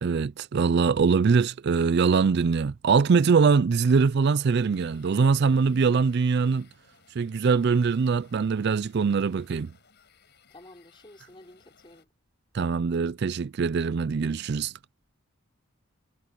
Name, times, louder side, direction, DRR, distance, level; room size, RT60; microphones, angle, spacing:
voice 1, 0.0-6.7 7.2-9.7 12.5-14.7, right 5 dB, 50° right, 0.4 m, -23 dB
sound 1, 4.7-12.0, left 7 dB, 50° left, 5.3 m, -61 dB
voice 2, 10.5-12.1, left 1 dB, 20° left, 3.7 m, -51 dB
head